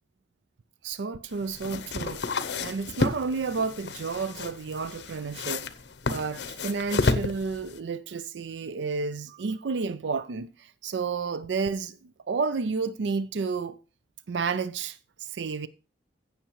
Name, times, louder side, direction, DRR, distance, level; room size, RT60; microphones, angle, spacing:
voice 1, 0.8-5.7 6.1-13.8 14.3-15.7, right 4 dB, 80° right, 0.5 m, -31 dB
sound 1, 1.3-7.8, left 3 dB, 70° left, 0.7 m, -31 dB
16.0 x 6.5 x 3.1 m
head